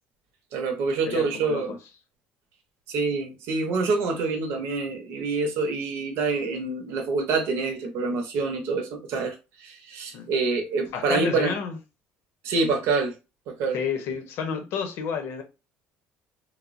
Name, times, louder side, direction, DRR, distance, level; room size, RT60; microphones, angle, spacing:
voice 1, 0.5-1.8 2.9-11.5 12.4-13.1 13.5-13.8, right 4 dB, 70° right, 0.7 m, -26 dB
voice 2, 1.1-1.8 10.1-10.3 10.9-11.8 13.7-15.4, left 6 dB, 70° left, 0.8 m, -30 dB
3.2 x 2.1 x 2.5 m
supercardioid pair, 95°, 5 cm